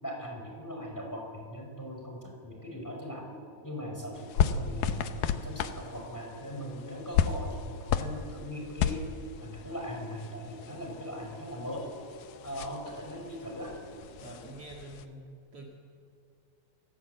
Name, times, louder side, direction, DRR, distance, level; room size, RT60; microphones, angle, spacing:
voice 1, 0.0-3.3 3.6-9.0 9.4-11.9 12.4-13.8, equal, 5° left, 0 dB, 5.2 m, -40 dB
sound 1, 2.5-14.7, left 1 dB, 70° left, 6.1 m, -56 dB
sound 2, 4.1-15.1, left 8 dB, 85° left, 2.6 m, -34 dB
voice 2, 14.2-15.7, right 2 dB, 50° right, -1 dB, 2.8 m, -46 dB
27.0 x 17.0 x 8.1 m, 2.2 s
omnidirectional pair, 3.7 m